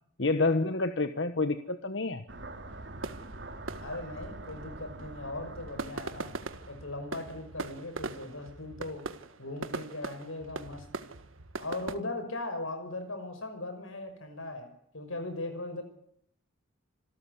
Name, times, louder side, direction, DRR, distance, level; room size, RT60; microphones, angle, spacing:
voice 1, 0.2-2.2, left 3 dB, 60° left, 10 dB, 1.2 m, -28 dB
sound 1, 2.3-7.2, right 2 dB, 60° right, 4.0 m, -45 dB
sound 2, 2.7-12.0, right 3 dB, 85° right, 1.7 m, -41 dB
voice 2, 3.8-6.3 6.7-9.1 9.4-10.9 11.6-15.8, left 2 dB, 90° left, 8 dB, 6.0 m, -39 dB
26.5 x 13.0 x 9.7 m, 0.69 s
head